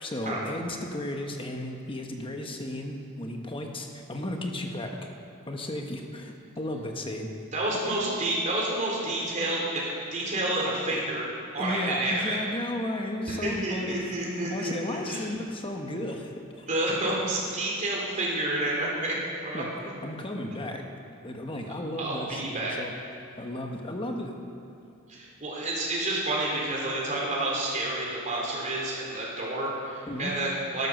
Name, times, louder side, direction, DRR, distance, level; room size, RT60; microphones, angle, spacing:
voice 1, 0.0-5.1 5.5-7.3 7.8-8.0 11.6-14.1 14.4-16.7 19.5-19.7 20.0-20.9 21.2-22.9 23.4-24.4 30.1-30.3, left 1 dB, 25° left, 3 dB, 1.2 m, -34 dB
voice 2, 7.5-11.3 11.5-12.4 13.3-15.3 16.7-19.1 19.4-19.9 22.0-22.7 25.1-30.9, right 1 dB, 35° right, -3 dB, 3.5 m, -29 dB
12.5 x 12.0 x 6.6 m, 2.8 s
head